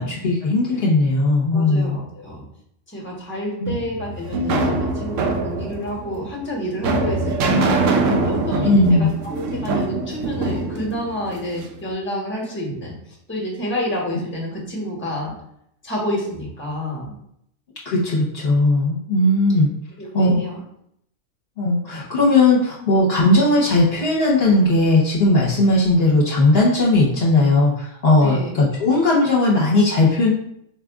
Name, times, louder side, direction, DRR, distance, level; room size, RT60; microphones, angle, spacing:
voice 1, 0.0-2.0 3.6-3.7 8.6-9.1 17.8-19.7 20.1-20.4 21.6-30.3, left 2 dB, 50° left, -6 dB, 1.0 m, -17 dB
voice 2, 1.5-2.4 2.9-7.7 8.2-9.0 9.2-15.3 15.8-17.1 19.5-19.6 20.0-20.6 28.2-28.5, equal, 10° left, -3 dB, 1.1 m, -29 dB
sound 1, 3.7-11.8, right 2 dB, 70° right, 0.9 m, -23 dB
4.7 x 2.5 x 3.5 m, 0.73 s
omnidirectional pair, 1.4 m